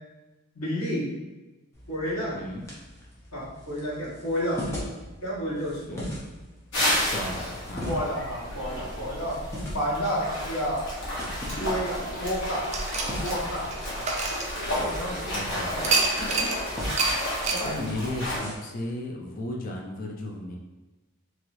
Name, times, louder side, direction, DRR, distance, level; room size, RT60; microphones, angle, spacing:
voice 1, 0.5-1.1 1.9-2.4 3.3-4.6 5.2-6.0 7.4-7.5 7.9-9.4 9.7-10.9 11.6-12.7 13.2-14.2 14.6-15.8 16.1-16.2 17.5-17.8, equal, 75° left, -8 dB, 1.3 m, -31 dB
sound 1, 1.7-18.6, equal, 15° left, 0.7 m, -41 dB
voice 2, 2.3-2.7 5.9-6.2 7.1-8.1 11.4-11.8 15.3-15.9 17.2-20.5, left 1 dB, 40° left, 0 dB, 0.4 m, -35 dB
sound 2, 6.7-18.4, equal, 55° left, 1.1 m, -31 dB
sound 3, 12.7-15.1 15.8-16.6 17.0-17.1 17.4-17.7, right 4 dB, 30° right, 0.3 m, -27 dB
3.0 x 2.9 x 2.6 m, 1.1 s
head